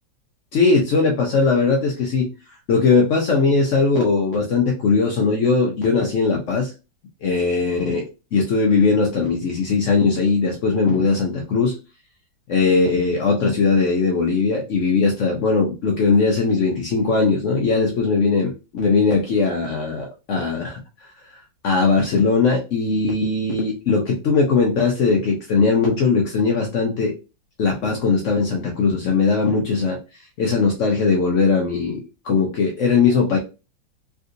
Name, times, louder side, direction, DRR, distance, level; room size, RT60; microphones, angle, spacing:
voice 1, 0.5-2.3 2.7-6.7 7.2-8.0 8.3-11.7 12.5-20.8 21.3-27.1 27.6-30.0 30.4-33.4, left 4 dB, 85° left, 0 dB, 0.6 m, -19 dB
3.6 x 2.6 x 2.5 m, 0.29 s
omnidirectional pair, 2.0 m